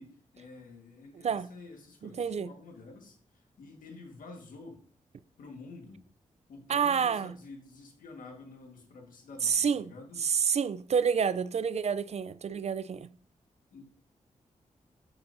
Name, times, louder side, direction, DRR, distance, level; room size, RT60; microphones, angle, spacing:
voice 1, 0.0-4.8 5.4-6.1 6.5-10.2 13.7-13.8, left 3 dB, 90° left, 1.6 m, -49 dB
voice 2, 2.0-2.5 6.7-7.3 9.4-9.9 10.2-13.1, right 7 dB, 55° right, 0.4 m, -28 dB
7.1 x 6.8 x 2.7 m
cardioid pair, 55°, 14 cm